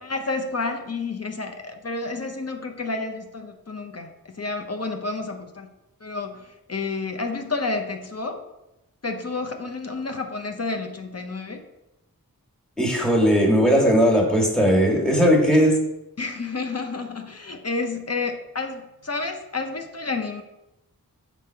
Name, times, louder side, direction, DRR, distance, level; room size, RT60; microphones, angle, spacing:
voice 1, 0.0-5.7 6.0-8.4 9.0-11.6 16.2-20.4, left 3 dB, 45° left, 4 dB, 0.7 m, -30 dB
voice 2, 12.8-15.8, equal, ahead, -1 dB, 1.6 m, -18 dB
6.2 x 3.6 x 4.4 m, 0.92 s
wide cardioid pair, 55°, 36 cm